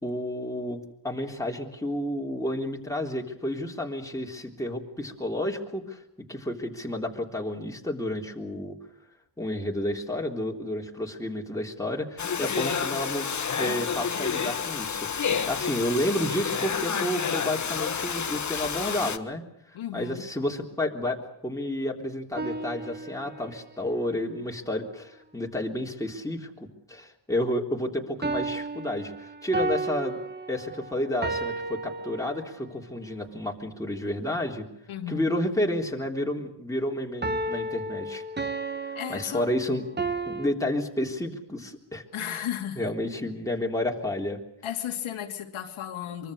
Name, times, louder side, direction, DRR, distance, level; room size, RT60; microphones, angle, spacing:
voice 1, 0.0-6.0 6.3-8.8 9.4-13.3 13.6-30.2 30.5-34.7 35.1-38.2 39.1-39.8 40.3-42.4 42.8-44.4, left 1 dB, 5° left, 0 dB, 3.5 m, -31 dB
Domestic sounds home sounds, 12.2-19.2, left 6 dB, 35° left, 1.4 m, -29 dB
voice 2, 12.4-12.8 19.7-20.3 34.9-35.3 38.9-39.5 42.1-42.9 44.6-46.3, left 10 dB, 85° left, 2 dB, 2.9 m, -34 dB
sound 1, 22.4-23.7 28.2-32.7 37.2-40.5, right 2 dB, 20° right, 1.7 m, -33 dB
24.5 x 24.0 x 6.6 m, 0.75 s
cardioid pair, 105°, 48 cm